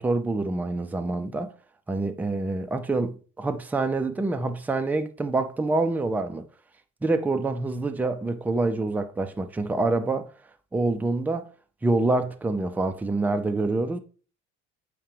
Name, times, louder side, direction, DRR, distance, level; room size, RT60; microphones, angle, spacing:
voice 1, 0.0-1.5 1.9-6.4 7.0-10.3 10.7-11.5 11.8-14.0, right 2 dB, 5° right, 0.4 m, -26 dB
7.1 x 5.0 x 3.3 m
figure-of-eight pair, 55°, 36 cm